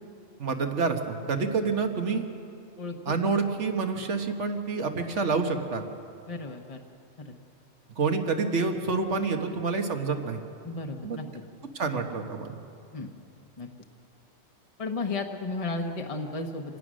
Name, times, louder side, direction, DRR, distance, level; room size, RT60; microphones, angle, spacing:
voice 1, 0.4-2.2 3.1-5.8 8.0-10.4 11.0-11.2 11.7-12.5, right 4 dB, 85° right, 5 dB, 1.7 m, -28 dB
voice 2, 2.8-3.1 6.3-6.8 7.2-7.3 10.6-11.2 12.9-13.1 13.6-13.7 14.8-16.8, left 3 dB, 30° left, 3 dB, 1.0 m, -34 dB
26.0 x 17.0 x 6.3 m, 2.6 s
omnidirectional pair, 1.2 m